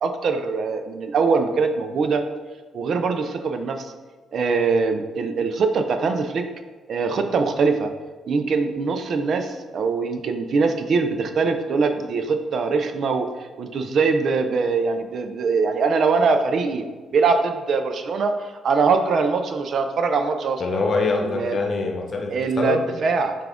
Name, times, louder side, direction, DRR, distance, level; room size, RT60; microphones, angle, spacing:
voice 1, 0.0-2.2 2.7-3.9 4.3-6.4 6.9-7.9 8.3-13.3 13.6-16.8 17.1-20.6 21.3-21.6 22.3-23.4, right 4 dB, 60° right, 7 dB, 0.4 m, -22 dB
voice 2, 20.6-22.8, left 3 dB, 45° left, 1 dB, 0.8 m, -24 dB
5.8 x 2.4 x 3.5 m, 1.4 s
cardioid pair, 90°, 0 cm